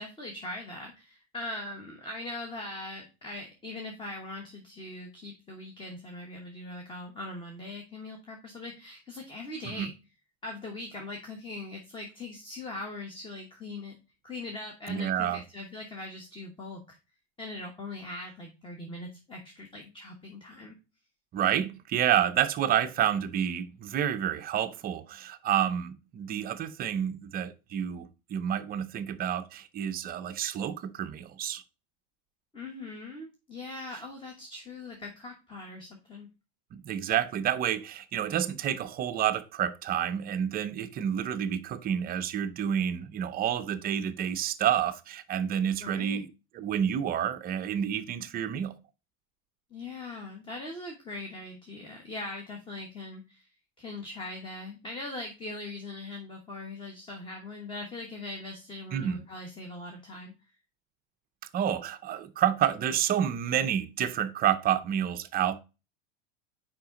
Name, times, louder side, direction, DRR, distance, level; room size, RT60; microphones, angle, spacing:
voice 1, 0.0-9.9 10.4-13.9 14.2-17.0 17.4-20.7 32.5-36.3 45.8-46.2 49.7-53.5 53.8-60.3, left 2 dB, 15° left, 1.1 m, -41 dB
voice 2, 14.9-15.4 21.3-31.6 33.9-34.0 36.7-46.3 46.5-48.8 58.9-59.2 61.5-65.6, right 10 dB, 25° right, 0.5 m, -29 dB
5.8 x 5.0 x 3.7 m
supercardioid pair, 135°, 34 cm